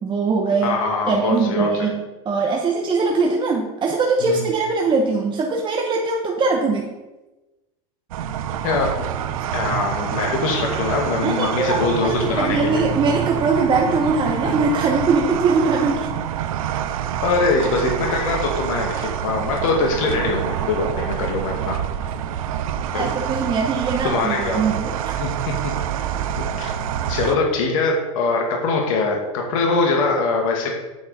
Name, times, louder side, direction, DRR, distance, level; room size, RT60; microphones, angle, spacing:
voice 1, 0.0-0.8 1.1-7.0 11.2-16.1 22.9-25.2, right 4 dB, 25° right, 1 dB, 1.1 m, -21 dB
voice 2, 0.6-1.9 4.2-4.5 8.6-8.9 9.5-12.8 14.4-14.5 17.2-21.8 22.9-23.0 24.0-24.6 25.2-25.3 25.6-25.7 26.2-26.7 27.1-30.7, left 3 dB, 70° left, 0 dB, 2.1 m, -22 dB
sound 1, 8.1-27.4, right 10 dB, 75° right, 0.7 m, -26 dB
8.4 x 6.5 x 5.4 m, 1.1 s
hypercardioid pair, 105°, 18 cm